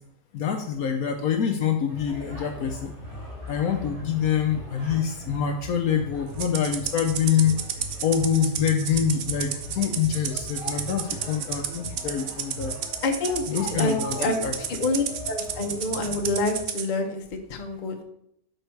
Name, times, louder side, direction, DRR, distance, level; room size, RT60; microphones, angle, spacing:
voice 1, 0.3-2.9 3.5-7.6 8.0-12.7 13.5-14.5, left 8 dB, 65° left, 4 dB, 0.9 m, -25 dB
sound 1, 1.9-16.6, equal, 85° right, 3.7 m, -40 dB
Rattle (instrument), 6.4-16.9, right 8 dB, 65° right, 0.7 m, -32 dB
voice 2, 13.0-14.4 14.8-17.2 17.5-18.0, left 2 dB, 45° left, 3 dB, 0.6 m, -27 dB
6.6 x 4.5 x 4.5 m, 0.76 s
omnidirectional pair, 1.9 m